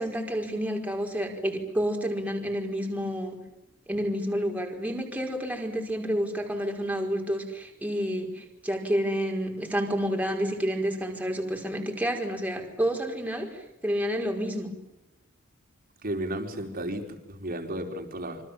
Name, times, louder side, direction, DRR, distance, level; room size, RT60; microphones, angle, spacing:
voice 1, 0.0-3.4 3.9-14.7, equal, 5° right, 2 dB, 5.1 m, -29 dB
voice 2, 16.0-17.0 17.3-18.4, right 1 dB, 45° right, 4 dB, 4.7 m, -33 dB
27.5 x 25.5 x 7.4 m, 0.89 s
head